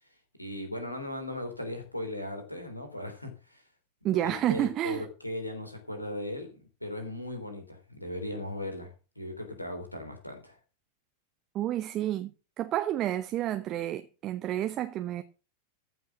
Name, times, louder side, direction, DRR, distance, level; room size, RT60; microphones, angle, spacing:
voice 1, 0.4-3.6 4.1-10.6, left 1 dB, 85° left, 3.4 m, -38 dB
voice 2, 4.0-5.0 11.5-12.3 12.6-15.2, right 13 dB, 35° right, 0.8 m, -30 dB
14.5 x 5.8 x 6.1 m
figure-of-eight pair, 90°, 0 cm